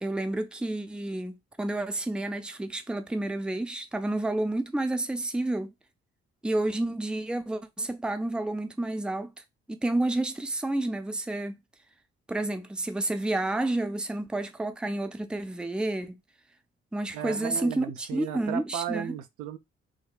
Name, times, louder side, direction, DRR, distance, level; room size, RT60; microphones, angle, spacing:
voice 1, 0.0-5.7 6.4-9.3 9.7-11.6 12.3-16.2 16.9-19.1, right 2 dB, 5° right, 0.5 m, -30 dB
voice 2, 17.1-19.6, right 11 dB, 70° right, 0.5 m, -35 dB
3.9 x 2.1 x 2.3 m
hypercardioid pair, 40°, 31 cm